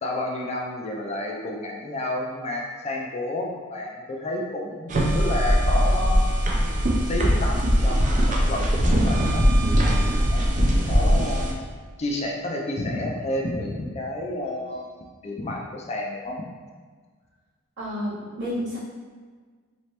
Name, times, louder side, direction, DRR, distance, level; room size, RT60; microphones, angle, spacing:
voice 1, 0.0-6.3 7.1-10.5 10.9-11.6 12.0-14.9 15.2-16.5, left 1 dB, 30° left, 0 dB, 0.4 m, -30 dB
sound 1, 4.9-11.5, equal, 35° right, 0.5 m, -21 dB
voice 2, 17.8-18.8, equal, 55° right, -10 dB, 1.4 m, -30 dB
3.2 x 3.0 x 2.9 m, 1.5 s
head